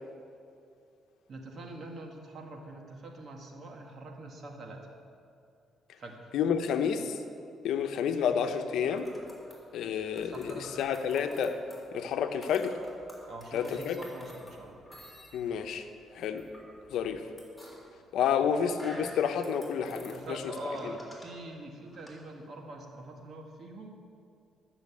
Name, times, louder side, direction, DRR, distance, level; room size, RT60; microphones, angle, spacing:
voice 1, 1.3-4.9 6.0-6.3 10.2-10.8 13.3-14.9 19.9-24.0, right 2 dB, 55° right, 1 dB, 2.0 m, -44 dB
voice 2, 6.3-7.2 7.6-9.1 9.7-11.6 11.9-12.8 13.5-14.0 15.3-15.9 16.1-16.4 16.9-17.2 18.1-20.4 20.8-20.9, left 7 dB, 80° left, 7 dB, 0.8 m, -30 dB
sound 1, 8.9-22.2, left 1 dB, 5° left, 3.6 m, -52 dB
12.0 x 7.1 x 8.4 m, 2.5 s
cardioid pair, 90°, 0 cm